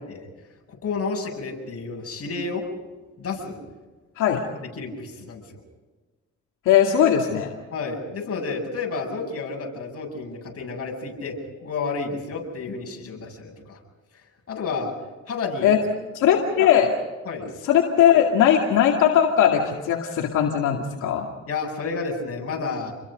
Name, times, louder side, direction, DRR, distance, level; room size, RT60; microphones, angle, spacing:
voice 1, 0.7-2.6 3.2-3.6 4.8-5.6 7.7-13.8 14.5-14.9 15.3-15.7 17.3-17.4 21.5-22.9, left 4 dB, 50° left, 1 dB, 7.8 m, -31 dB
voice 2, 6.7-7.5 15.6-15.8 16.1-16.9 17.7-21.3, left 9 dB, 85° left, 0 dB, 2.4 m, -19 dB
29.0 x 22.0 x 5.3 m, 1.3 s
cardioid pair, 90°, 30 cm